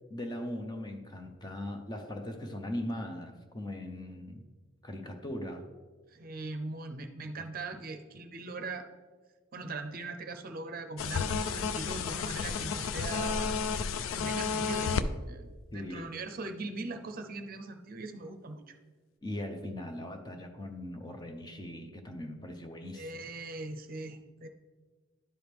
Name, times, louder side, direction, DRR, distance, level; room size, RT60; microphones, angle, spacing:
voice 1, 0.1-4.5 4.8-5.7 7.4-7.5 15.7-16.2 19.2-23.2, left 1 dB, 20° left, 5 dB, 0.6 m, -39 dB
voice 2, 6.1-8.9 9.5-13.6 14.1-15.5 15.7-18.7 22.9-24.5, right 3 dB, 45° right, 6 dB, 0.6 m, -40 dB
sound 1, 11.0-15.1, left 5 dB, 75° left, 0.4 m, -31 dB
11.0 x 4.8 x 3.4 m, 1.3 s
head